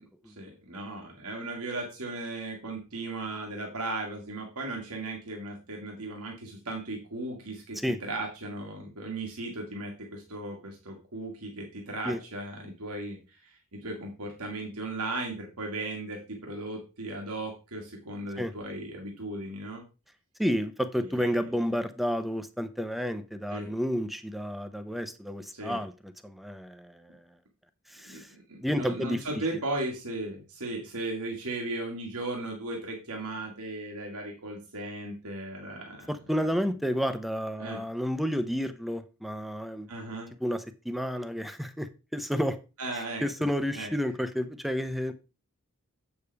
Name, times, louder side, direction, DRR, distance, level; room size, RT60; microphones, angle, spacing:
voice 1, 0.3-19.8 21.0-21.3 23.5-23.7 25.5-25.8 28.0-28.2 28.5-36.1 36.4-36.5 37.6-37.8 39.9-40.3 42.8-43.2 43.7-43.9, right 2 dB, 90° right, 0 dB, 1.9 m, -36 dB
voice 2, 20.4-27.3 27.9-28.3 28.6-29.2 36.1-39.9 40.4-42.6 42.9-45.1, equal, ahead, 10 dB, 0.6 m, -31 dB
8.2 x 6.9 x 3.4 m, 0.30 s
head